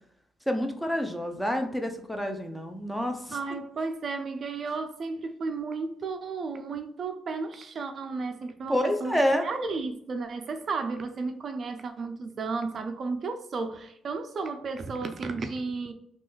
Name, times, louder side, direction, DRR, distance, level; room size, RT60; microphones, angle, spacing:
voice 1, 0.5-3.4 8.7-9.4, equal, 5° left, 0.5 m, -28 dB
voice 2, 3.3-15.9, right 4 dB, 50° right, 0.3 m, -33 dB
3.1 x 2.3 x 3.1 m
cardioid pair, 90°, 0 cm